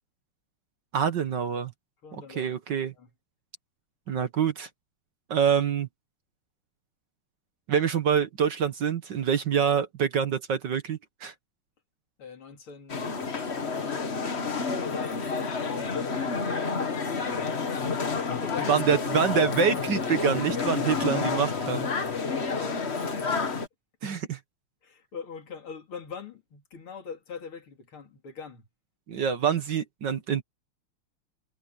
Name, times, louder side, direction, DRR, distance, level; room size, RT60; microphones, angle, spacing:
voice 1, 0.9-1.7 2.1-2.9 4.1-4.7 5.3-5.9 7.7-11.3 18.7-21.9 24.0-24.4 29.1-30.4, right 7 dB, 55° right, 1.8 m, -26 dB
voice 2, 2.0-3.1 12.2-16.3 18.3-18.8 22.2-23.6 24.8-28.7, left 6 dB, 70° left, 3.6 m, -43 dB
sound 1, 12.9-23.7, left 4 dB, 35° left, 1.5 m, -29 dB
omnidirectional pair, 2.4 m